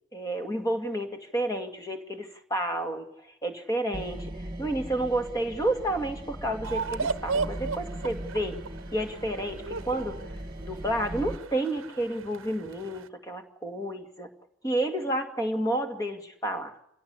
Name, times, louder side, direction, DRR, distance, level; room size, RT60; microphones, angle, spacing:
voice 1, 0.1-8.6 8.9-10.2 10.6-14.3 14.6-16.7, right 1 dB, 15° left, 5 dB, 2.2 m, -30 dB
sound 1, 3.9-11.4, right 1 dB, 20° right, 1.8 m, -39 dB
sound 2, 6.6-13.1, right 4 dB, 80° right, 0.9 m, -36 dB
26.5 x 17.0 x 8.3 m, 0.84 s
head